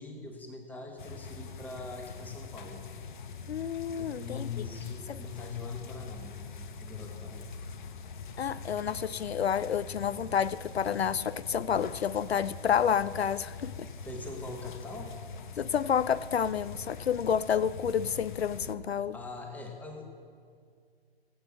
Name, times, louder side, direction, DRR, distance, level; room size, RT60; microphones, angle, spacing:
voice 1, 0.0-2.8 4.0-7.5 14.0-15.1 18.9-20.0, left 3 dB, 5° left, 1.3 m, -42 dB
sound 1, 1.0-18.8, left 5 dB, 50° left, 1.0 m, -43 dB
voice 2, 3.5-4.6 5.1-5.2 8.4-13.9 15.6-19.1, left 8 dB, 80° left, 0.5 m, -29 dB
16.5 x 8.0 x 7.5 m
figure-of-eight pair, 130°, 31 cm